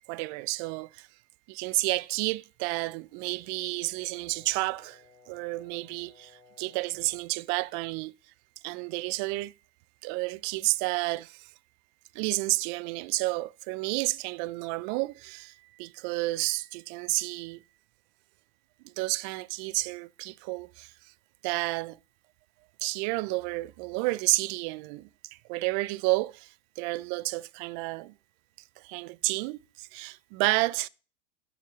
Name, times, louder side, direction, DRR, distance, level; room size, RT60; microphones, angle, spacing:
voice 1, 0.1-1.1 1.5-8.1 8.6-9.5 10.0-11.5 12.1-17.6 18.8-21.1 21.4-22.0 22.8-28.1 28.8-30.9, right 22 dB, 40° right, 0.4 m, -31 dB
Brass instrument, 3.1-7.3, left 4 dB, 10° left, 4.0 m, -59 dB
7.2 x 7.1 x 5.8 m
hypercardioid pair, 110°, 36 cm